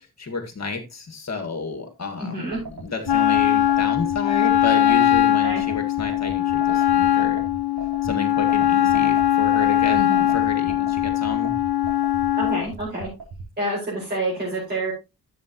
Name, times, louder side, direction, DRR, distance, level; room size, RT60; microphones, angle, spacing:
voice 1, 0.2-7.4 8.0-11.5, left 4 dB, 45° left, 5 dB, 1.9 m, -31 dB
voice 2, 2.2-2.6 5.4-5.6 9.9-10.3 12.4-13.1 13.6-14.9, right 1 dB, 25° right, -7 dB, 5.1 m, -28 dB
sound 1, 2.5-13.5, right 4 dB, 85° right, 3.9 m, -37 dB
Wind instrument woodwind instrument, 3.1-12.7, left 12 dB, 85° left, 0.7 m, -20 dB
12.0 x 7.3 x 3.0 m, 0.26 s
wide cardioid pair, 165°, 38 cm